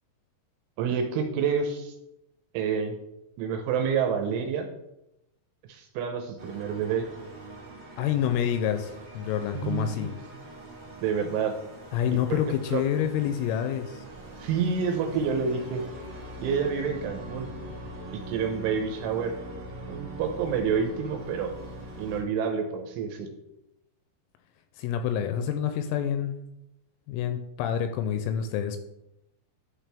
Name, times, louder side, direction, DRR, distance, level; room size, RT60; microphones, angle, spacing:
voice 1, 0.8-1.9 2.5-2.9 3.4-4.7 5.7-7.1 9.5-10.0 11.0-11.6 12.3-12.4 12.7-12.8 14.4-15.8 16.4-17.5 18.1-19.4 19.9-21.6 22.0-23.3, right 6 dB, 80° right, 4 dB, 3.0 m, -28 dB
sound 1, 6.4-22.2, right 1 dB, 65° right, 1.0 m, -42 dB
voice 2, 8.0-10.1 11.9-14.0 24.8-26.4 27.1-28.8, left 9 dB, 85° left, 8 dB, 2.9 m, -28 dB
11.5 x 4.5 x 3.4 m, 0.88 s
omnidirectional pair, 6.0 m